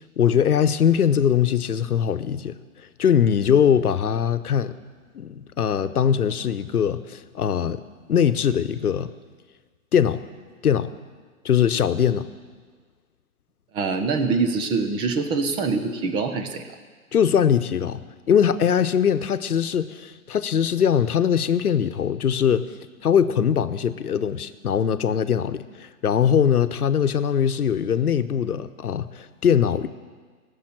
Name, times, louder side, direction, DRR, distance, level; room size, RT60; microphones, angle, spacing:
voice 1, 0.2-2.6 3.0-4.7 5.1-7.8 8.1-9.1 9.9-10.2 10.6-10.9 11.4-12.3 17.1-22.7 23.0-29.9, left 8 dB, 85° left, 12 dB, 1.0 m, -21 dB
voice 2, 13.7-16.6, right 4 dB, 10° right, 8 dB, 0.6 m, -24 dB
16.5 x 7.1 x 9.0 m, 1.5 s
hypercardioid pair, 135°, 43 cm